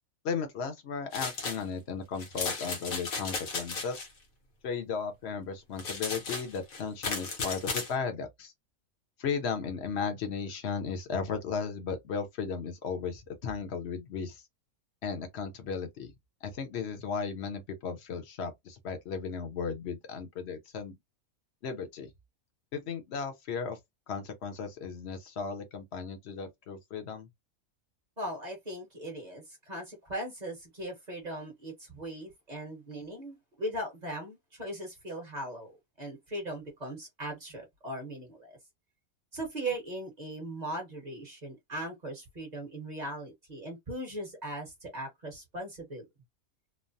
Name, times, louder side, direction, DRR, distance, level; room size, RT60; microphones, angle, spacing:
voice 1, 0.2-4.1 4.6-8.5 9.2-14.4 15.0-16.1 16.4-21.0 21.6-22.1 22.7-23.8 24.1-27.3, left 5 dB, 55° left, 0.9 m, -35 dB
sound 1, 1.1-1.6 2.2-4.1 5.8-7.9, left 4 dB, 80° left, 1.4 m, -35 dB
voice 2, 28.2-38.6 39.3-46.1, right 1 dB, 35° right, 1.1 m, -39 dB
3.1 x 2.0 x 2.6 m
omnidirectional pair, 1.4 m